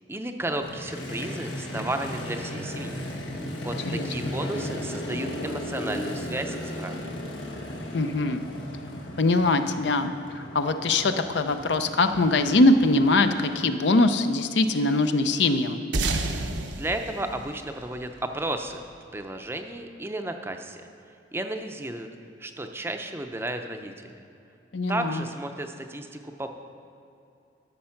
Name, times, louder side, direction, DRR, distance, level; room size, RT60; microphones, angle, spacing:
voice 1, 0.1-3.0 3.6-7.0 16.6-18.8 19.1-20.9 21.3-22.1 22.4-23.9 24.9-26.5, right 1 dB, 15° right, 5 dB, 0.5 m, -33 dB
Motorcycle, 0.6-13.6, left 1 dB, 85° left, 1.4 m, -36 dB
voice 2, 3.9-4.3 7.9-8.4 9.2-15.8 24.7-25.2, left 2 dB, 70° left, 8 dB, 0.6 m, -22 dB
sound 1, 15.9-18.7, right 2 dB, 80° right, 0.9 m, -30 dB
13.0 x 6.5 x 5.8 m, 2.7 s
head